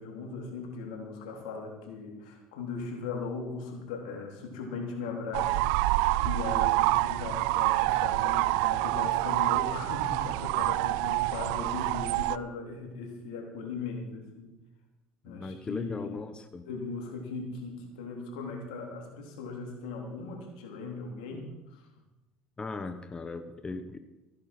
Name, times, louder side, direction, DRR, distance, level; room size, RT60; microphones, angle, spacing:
voice 1, 0.0-14.5 15.2-16.1 16.7-21.9, left 4 dB, 85° left, 1 dB, 3.6 m, -38 dB
sound 1, 5.3-12.4, right 19 dB, 80° right, 0.4 m, -27 dB
voice 2, 15.2-16.7 21.3-21.4 22.6-24.0, left 3 dB, 20° left, 8 dB, 1.2 m, -38 dB
15.5 x 10.0 x 6.1 m, 1.0 s
supercardioid pair, 90°, 4 cm